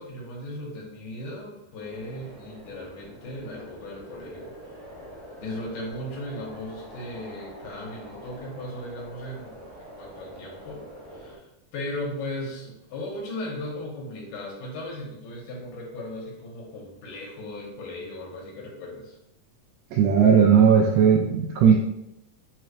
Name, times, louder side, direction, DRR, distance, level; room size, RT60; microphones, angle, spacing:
voice 1, 0.0-4.8 5.4-9.6 10.0-10.9 11.1-11.5 11.7-19.2, left 1 dB, 75° left, -2 dB, 2.6 m, -37 dB
sound 1, 1.8-11.4, equal, 50° right, 0.8 m, -45 dB
voice 2, 19.9-21.7, right 7 dB, 85° right, -2 dB, 2.2 m, -17 dB
5.8 x 3.1 x 2.4 m, 0.82 s
omnidirectional pair, 3.9 m